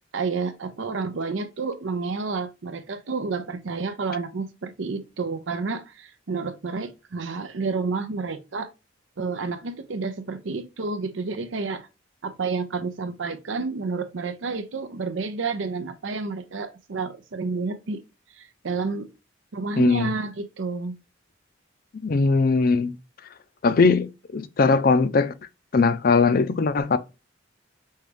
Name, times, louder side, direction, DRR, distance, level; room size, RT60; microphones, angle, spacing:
voice 1, 0.1-8.7 9.2-11.9 12.2-18.0 18.3-19.1 19.5-20.9, right 4 dB, 85° right, 0.6 m, -30 dB
voice 2, 19.8-20.1 22.0-23.0 23.6-25.3 25.7-27.0, left 4 dB, 50° left, 0.4 m, -20 dB
5.4 x 2.3 x 3.3 m
head